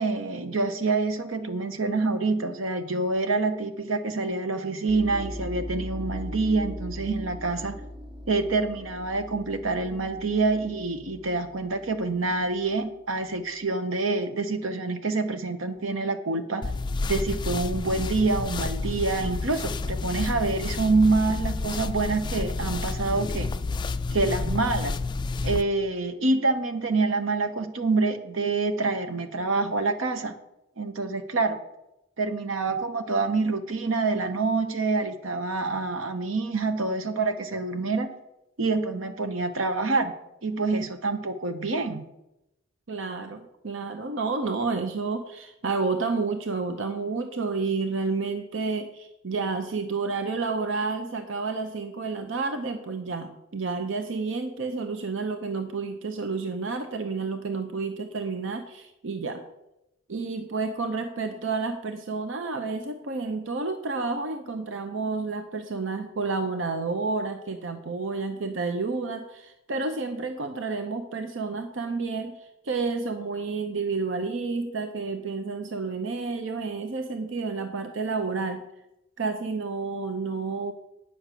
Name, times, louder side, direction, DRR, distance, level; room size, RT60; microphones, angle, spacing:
voice 1, 0.0-7.8 8.3-16.6 17.1-23.5 24.1-25.0 25.4-30.3 30.8-31.6 32.2-38.1 38.6-40.1 40.4-42.0, right 3 dB, 85° right, 8 dB, 1.0 m, -26 dB
sound 1, 4.9-13.6, left 1 dB, 25° right, 0.9 m, -40 dB
sound 2, 16.6-25.6, left 3 dB, 25° left, 0.3 m, -30 dB
voice 2, 42.9-59.4 60.1-78.6 79.2-80.7, right 4 dB, 65° right, 7 dB, 0.7 m, -30 dB
9.3 x 6.2 x 6.7 m, 0.88 s
head